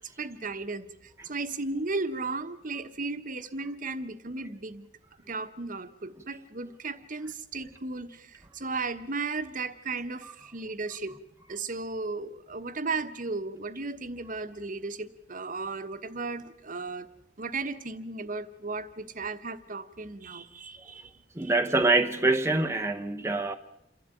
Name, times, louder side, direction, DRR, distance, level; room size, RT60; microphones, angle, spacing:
voice 1, 0.2-4.9 5.3-11.1 11.5-17.1 17.4-21.6, right 3 dB, 45° right, 1.2 m, -35 dB
voice 2, 21.4-23.5, right 2 dB, 15° right, 0.9 m, -25 dB
28.0 x 12.0 x 9.2 m
head